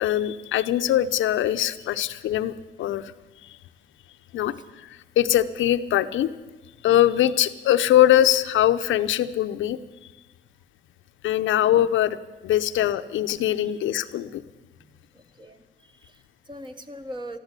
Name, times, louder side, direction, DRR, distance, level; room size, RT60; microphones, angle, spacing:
voice 1, 0.0-2.5 2.8-3.1 3.4-3.6 4.3-6.3 6.8-9.8 11.2-12.2 12.4-14.4, left 12 dB, 75° left, 11 dB, 0.8 m, -22 dB
voice 2, 14.8-17.4, equal, 25° right, 7 dB, 1.3 m, -42 dB
13.5 x 12.5 x 8.3 m, 1.2 s
cardioid pair, 90°, 20 cm